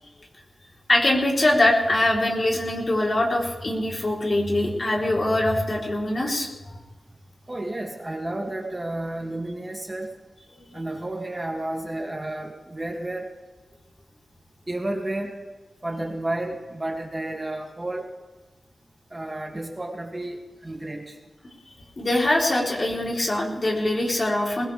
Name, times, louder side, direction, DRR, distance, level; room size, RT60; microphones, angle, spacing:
voice 1, 0.9-6.8 10.5-10.8 22.0-24.7, left 1 dB, 45° left, -1 dB, 3.8 m, -23 dB
voice 2, 7.5-10.1 10.7-13.3 14.7-15.4 15.8-18.1 19.1-21.2, right 1 dB, 25° right, 2 dB, 2.4 m, -31 dB
20.5 x 18.0 x 3.5 m, 1.2 s
cardioid pair, 60°, 0 cm